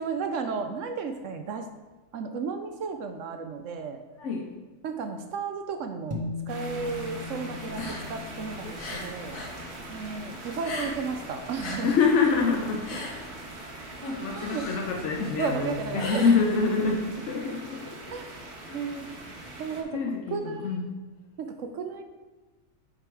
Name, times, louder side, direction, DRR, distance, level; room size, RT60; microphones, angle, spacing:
voice 1, 0.0-1.7 2.1-4.0 4.8-6.2 6.5-9.4 9.9-12.0 14.3-14.7 15.4-16.4 18.1-19.1 19.6-20.8 21.4-22.0, right 5 dB, 65° right, 7 dB, 0.8 m, -33 dB
sound 1, 6.1-12.7, left 4 dB, 30° right, 0.7 m, -41 dB
sound 2, 6.5-19.8, right 2 dB, 45° right, 1.4 m, -42 dB
sound 3, 7.6-9.6 9.9-11.2 11.5-16.9, left 2 dB, 80° left, 1.7 m, -37 dB
voice 2, 11.8-12.9 14.2-18.0 18.7-18.9 19.9-20.9, left 5 dB, 55° left, 0 dB, 1.0 m, -26 dB
7.6 x 5.0 x 4.7 m, 1.2 s
omnidirectional pair, 1.6 m